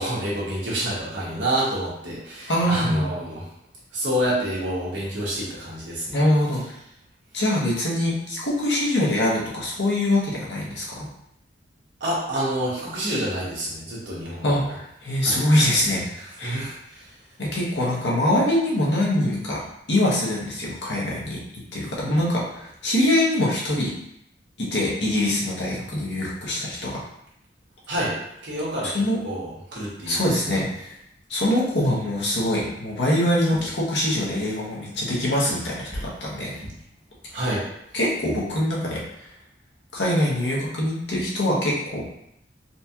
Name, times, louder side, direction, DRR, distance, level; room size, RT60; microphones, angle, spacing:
voice 1, 0.0-3.4 3.9-6.2 12.0-14.7 15.2-15.4 16.1-17.1 27.9-28.2 28.4-30.6 33.6-33.7 37.3-37.7, right 1 dB, 75° right, -6 dB, 1.3 m, -28 dB
voice 2, 2.5-3.1 6.1-6.6 7.3-11.1 14.4-16.0 16.4-16.6 17.4-19.6 19.9-21.4 21.7-23.9 24.7-27.0 28.8-29.2 30.1-31.0 31.3-36.6 37.9-39.3 39.9-42.0, left 1 dB, 70° left, -4 dB, 1.0 m, -23 dB
4.1 x 2.3 x 2.8 m, 0.78 s
head